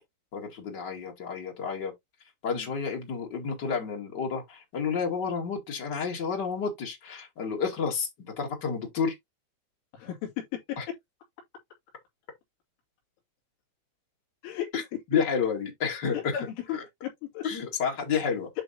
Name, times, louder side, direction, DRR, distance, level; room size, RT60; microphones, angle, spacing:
voice 1, 0.3-1.9 2.4-9.1 10.8-10.9 14.7-14.8 15.1-16.4 16.7-16.8 17.4-18.5, left 6 dB, 50° left, 1.2 m, -30 dB
voice 2, 9.9-10.6 10.9-11.0 14.4-14.7 15.1-15.2 16.1-17.5, left 11 dB, 70° left, 5.0 m, -35 dB
11.0 x 3.9 x 2.8 m
omnidirectional pair, 5.9 m